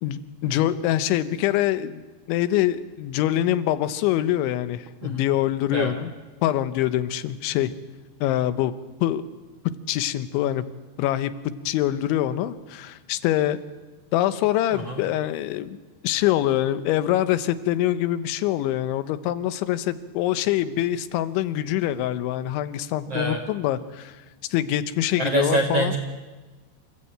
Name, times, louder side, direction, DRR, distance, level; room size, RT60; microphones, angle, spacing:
voice 1, 0.0-2.0 2.3-6.1 6.4-7.7 8.2-8.7 9.0-9.2 9.6-10.6 11.0-13.6 14.1-15.8 16.0-24.1 24.5-25.9, left 13 dB, 90° left, 12 dB, 3.4 m, -24 dB
voice 2, 23.0-23.4 25.2-26.0, right 2 dB, 55° right, 2 dB, 1.7 m, -25 dB
27.5 x 16.0 x 8.8 m, 1.3 s
omnidirectional pair, 5.2 m